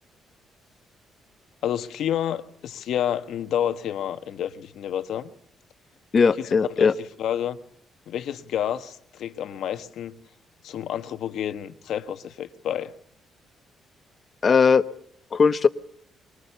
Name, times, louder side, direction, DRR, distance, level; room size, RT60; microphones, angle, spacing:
voice 1, 1.6-5.3 6.4-7.6 8.1-10.2 10.6-12.9, left 10 dB, 75° left, 1.1 m, -29 dB
voice 2, 6.1-6.9 14.4-14.8 15.3-15.7, left 5 dB, 40° left, 1.0 m, -18 dB
23.0 x 19.0 x 6.9 m
cardioid pair, 90°, 0 cm